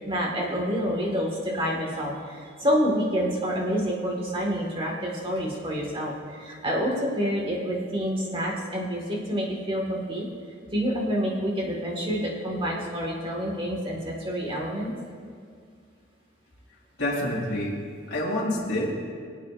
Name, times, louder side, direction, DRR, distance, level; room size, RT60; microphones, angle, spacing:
voice 1, 0.1-10.3 10.7-14.9, equal, 25° right, -2 dB, 1.8 m, -28 dB
voice 2, 17.0-17.7 18.1-18.9, left 1 dB, 60° left, -5 dB, 2.8 m, -27 dB
24.0 x 8.2 x 2.5 m, 2.2 s
head